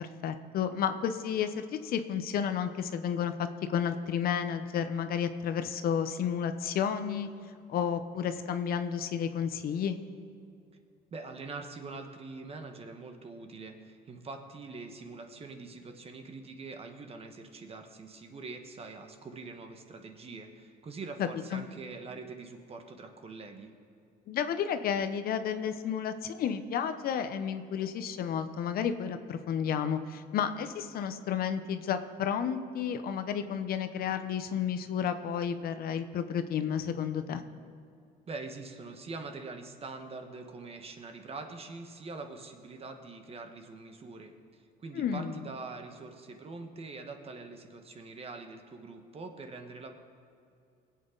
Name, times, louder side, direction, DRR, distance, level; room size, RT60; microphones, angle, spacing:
voice 1, 0.0-3.3 3.7-7.3 7.7-10.0 21.2-21.7 24.3-37.4 44.9-45.4, left 8 dB, 60° left, 9 dB, 0.8 m, -31 dB
voice 2, 11.1-23.7 38.3-49.9, right 3 dB, 35° right, 5 dB, 1.4 m, -44 dB
20.5 x 8.5 x 3.9 m, 2.5 s
cardioid pair, 110°, 17 cm